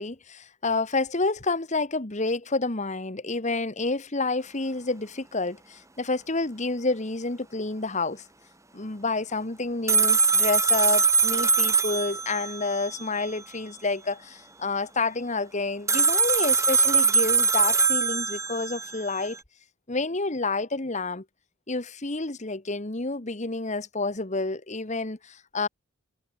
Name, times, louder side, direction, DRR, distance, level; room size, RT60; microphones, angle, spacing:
voice 1, 0.0-8.2 8.7-19.4 19.9-21.2 21.7-25.7, left 3 dB, 35° left, 1.5 m, -29 dB
sound 1, 9.9-13.3 15.9-19.3, right 5 dB, 15° right, 3.5 m, -22 dB
head